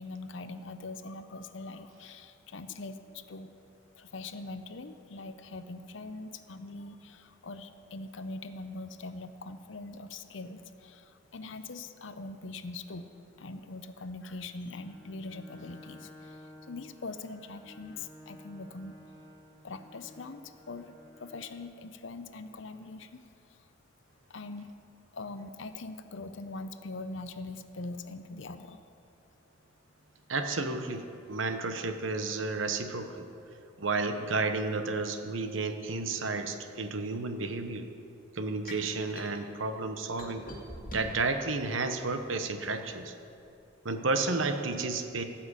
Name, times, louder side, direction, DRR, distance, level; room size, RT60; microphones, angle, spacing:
voice 1, 0.0-3.5 4.0-13.1 13.4-18.9 19.6-23.2 23.5-23.7 24.3-24.7 25.1-28.8, left 3 dB, 70° left, 10 dB, 0.7 m, -42 dB
Bowed string instrument, 14.6-21.6, left 1 dB, 20° left, 2.7 m, -53 dB
voice 2, 30.3-33.3 33.8-37.9 38.3-40.5 40.8-43.1 43.8-45.2, right 3 dB, 85° right, 7 dB, 1.0 m, -32 dB
sound 1, 38.6-39.3 40.2-41.3 41.9-42.7, left 1 dB, 45° left, 2.3 m, -43 dB
17.5 x 5.9 x 8.1 m, 2.6 s
head